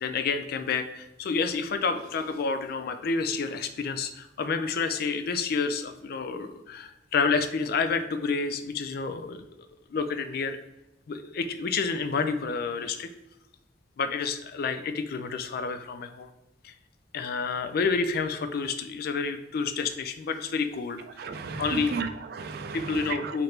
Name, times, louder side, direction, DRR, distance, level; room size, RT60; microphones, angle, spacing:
voice 1, 0.0-9.4 9.9-10.6 11.1-13.1 14.0-16.3 16.6-16.7 17.1-21.0 21.6-21.9 22.7-23.4, left 5 dB, 60° left, 9 dB, 0.4 m, -29 dB
voice 2, 21.2-23.4, right 4 dB, 60° right, 9 dB, 0.4 m, -34 dB
3.3 x 2.5 x 4.3 m, 0.92 s
head